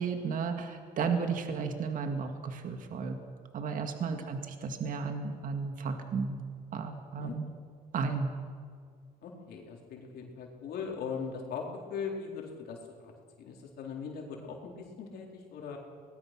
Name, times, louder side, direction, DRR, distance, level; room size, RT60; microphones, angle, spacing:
voice 1, 0.0-3.2 3.5-6.4 6.7-7.5 7.9-8.3, right 5 dB, 55° right, 5 dB, 2.1 m, -33 dB
voice 2, 9.2-13.1 13.4-15.8, left 6 dB, 70° left, 0 dB, 4.1 m, -40 dB
24.0 x 20.0 x 6.1 m, 2.1 s
cardioid pair, 110°, 17 cm